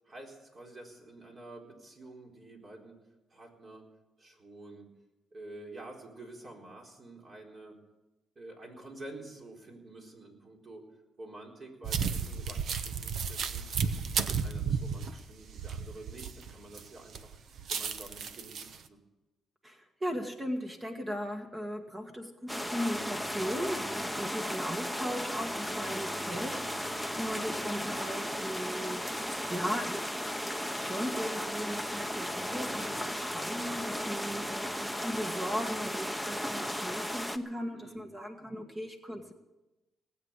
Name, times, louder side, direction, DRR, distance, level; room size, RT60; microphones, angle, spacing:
voice 1, 0.0-3.9 4.2-4.9 5.3-7.8 8.4-10.8 11.2-14.0 14.4-17.4 17.7-19.0 37.7-38.0, right 2 dB, 40° right, 0 dB, 4.3 m, -49 dB
sound 1, 11.8-16.8 17.1-18.8, right 6 dB, 65° right, 0.9 m, -33 dB
voice 2, 19.6-30.1 30.8-39.3, equal, 20° right, 3 dB, 1.7 m, -37 dB
sound 2, 22.5-37.4, equal, 5° right, 1.0 m, -35 dB
19.0 x 8.3 x 8.2 m, 1.0 s
cardioid pair, 90°, 0 cm